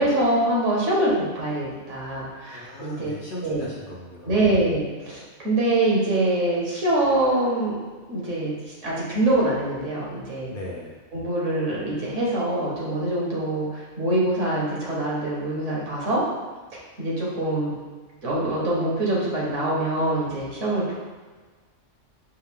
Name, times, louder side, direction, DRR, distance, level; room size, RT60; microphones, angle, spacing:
voice 1, 0.0-3.1 3.4-3.7 4.2-7.8 8.1-8.5 8.8-10.5 11.1-16.2 17.0-17.7 18.2-20.9, right 1 dB, 75° right, -5 dB, 1.6 m, -24 dB
voice 2, 2.5-4.6 10.5-11.0, left 1 dB, 50° left, -4 dB, 0.8 m, -38 dB
5.5 x 2.2 x 3.5 m, 1.4 s
omnidirectional pair, 1.3 m